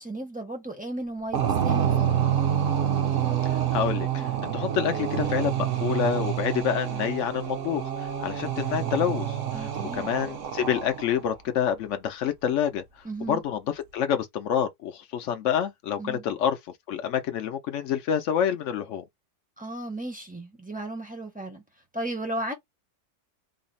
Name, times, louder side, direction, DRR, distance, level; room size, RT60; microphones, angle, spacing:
voice 1, 0.0-2.3 9.5-10.1 13.0-13.4 16.0-16.2 19.6-21.6 21.9-22.5, right 1 dB, 10° right, 0.5 m, -35 dB
sound 1, 1.3-11.2, right 10 dB, 60° right, 0.8 m, -27 dB
voice 2, 3.7-12.8 13.3-13.6 13.9-16.6 16.9-19.0, left 9 dB, 75° left, 0.6 m, -27 dB
3.9 x 2.0 x 3.9 m
omnidirectional pair, 1.9 m